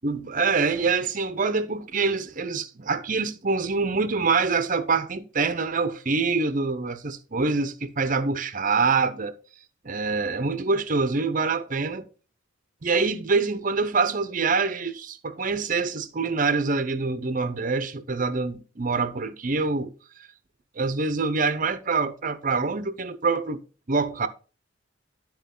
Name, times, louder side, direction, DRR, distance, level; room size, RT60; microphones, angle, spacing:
voice 1, 0.0-9.4 9.8-12.1 12.8-19.9 20.8-23.6 23.9-24.3, right 4 dB, 40° right, 0.7 m, -25 dB
11.5 x 4.5 x 3.8 m
head